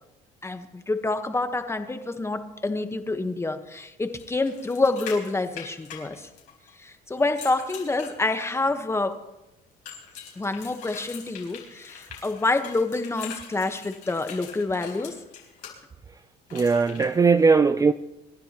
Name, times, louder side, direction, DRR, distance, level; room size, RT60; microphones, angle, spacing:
voice 1, 0.4-6.3 6.8-9.2 10.4-15.2, left 3 dB, 15° left, 1.2 m, -27 dB
sound 1, 4.2-6.7 7.2-8.7 9.9-15.7 16.5-17.0, left 8 dB, 90° left, 4.6 m, -43 dB
voice 2, 16.5-17.9, right 4 dB, 20° right, 0.4 m, -19 dB
27.5 x 11.5 x 3.0 m
cardioid pair, 110°, 17 cm